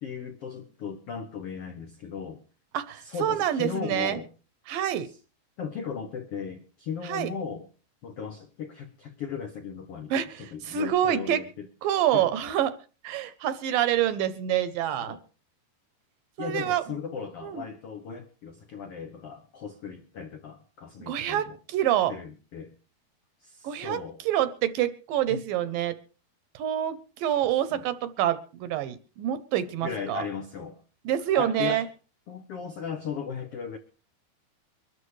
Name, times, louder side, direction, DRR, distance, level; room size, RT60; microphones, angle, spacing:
voice 1, 0.0-2.4 3.0-4.3 5.0-5.2 5.6-7.7 8.0-11.7 12.1-12.3 15.0-15.2 16.4-21.6 22.1-22.7 23.4-24.2 25.3-25.4 27.7-27.9 29.8-30.8 31.3-31.9 32.3-33.8, left 6 dB, 85° left, 6 dB, 1.3 m, -37 dB
voice 2, 2.7-4.2 4.7-5.1 7.0-7.3 10.1-11.4 11.8-12.7 13.0-15.2 16.4-16.8 17.4-17.6 21.1-22.1 23.6-24.0 24.3-26.0 26.6-30.2 31.1-31.8, right 11 dB, 75° right, 13 dB, 2.3 m, -27 dB
24.0 x 13.0 x 3.2 m, 0.36 s
omnidirectional pair, 4.5 m